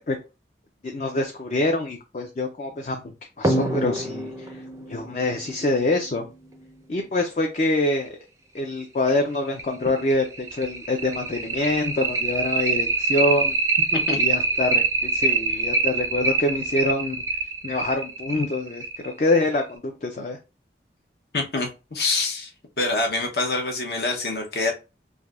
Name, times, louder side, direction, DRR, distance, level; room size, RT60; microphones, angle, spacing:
voice 1, 0.8-4.5 4.9-6.2 6.9-8.1 8.5-13.6 14.2-17.2 17.6-20.4, left 2 dB, 40° left, 4 dB, 0.4 m, -25 dB
sound 1, 3.4-6.6 8.1-8.2 8.6-8.7 9.1-9.2 9.6-19.6, right 3 dB, 15° right, 0.4 m, -25 dB
voice 2, 21.3-22.5 22.8-24.7, left 3 dB, 65° left, 2 dB, 0.8 m, -25 dB
3.3 x 2.6 x 2.4 m, 0.29 s
head